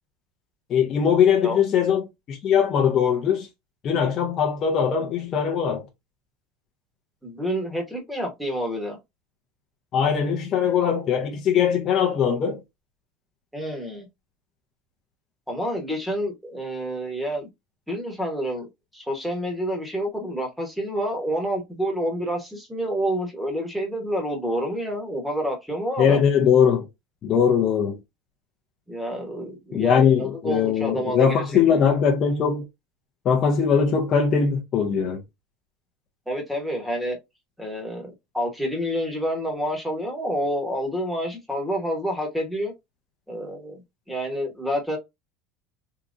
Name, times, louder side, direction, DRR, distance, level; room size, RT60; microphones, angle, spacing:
voice 1, 0.7-3.5 3.8-5.8 9.9-12.6 26.0-26.9 27.2-28.0 29.7-32.7 33.2-35.2, left 7 dB, 30° left, 0.6 m, -21 dB
voice 2, 7.2-9.0 13.5-14.1 15.5-17.5 17.9-18.7 18.9-26.2 28.9-31.4 31.7-31.8 36.3-37.2 37.6-42.7 43.3-43.8 44.1-45.0, equal, ahead, 1.1 m, -28 dB
3.6 x 2.8 x 2.5 m
supercardioid pair, 165°, 0 cm